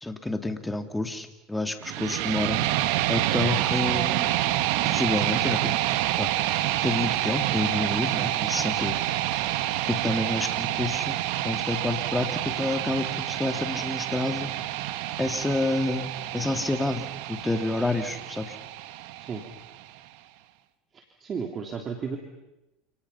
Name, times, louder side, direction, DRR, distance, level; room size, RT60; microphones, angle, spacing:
voice 1, 0.0-2.6 3.1-4.3 4.8-5.8 6.2-6.3 6.8-9.0 9.9-11.2 11.4-14.5 15.2-18.6, left 2 dB, 10° left, 7 dB, 2.9 m, -29 dB
sound 1, 1.8-19.8, right 15 dB, 70° right, 1.7 m, -28 dB
voice 2, 20.9-22.2, right 6 dB, 35° right, 3 dB, 3.5 m, -34 dB
29.5 x 28.0 x 5.8 m, 0.95 s
hypercardioid pair, 85°, 0 cm